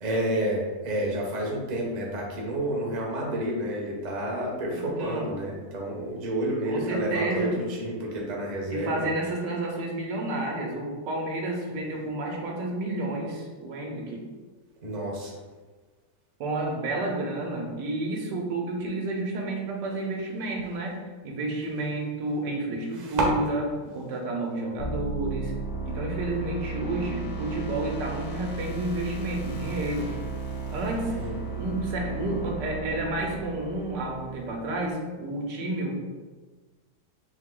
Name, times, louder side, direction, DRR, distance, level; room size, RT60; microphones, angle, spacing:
voice 1, 0.0-9.1 14.8-15.3 22.9-23.3 31.1-31.4, right 1 dB, 40° right, -2 dB, 0.7 m, -29 dB
voice 2, 4.7-5.3 6.7-7.5 8.7-14.2 16.4-21.0 21.2-23.6 23.9-25.5 25.8-30.1 30.7-31.1 31.5-36.0, right 2 dB, 80° right, 0 dB, 1.4 m, -30 dB
sound 1, 24.8-34.6, right 4 dB, 60° left, 0.8 m, -34 dB
4.4 x 2.8 x 3.7 m, 1.3 s
omnidirectional pair, 1.9 m